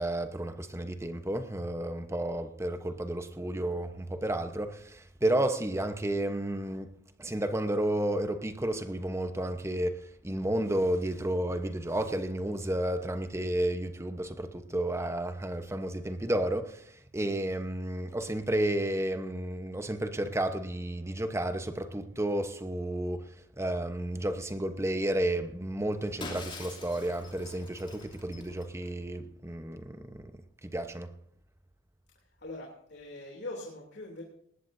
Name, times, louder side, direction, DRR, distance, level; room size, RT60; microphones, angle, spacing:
voice 1, 0.0-6.9 7.2-30.3 30.6-31.1, right 1 dB, 15° right, 1.0 m, -32 dB
Shatter, 26.2-28.9, left 3 dB, 25° left, 3.0 m, -44 dB
voice 2, 32.1-34.2, left 2 dB, 60° left, 3.1 m, -42 dB
19.5 x 19.5 x 2.7 m
head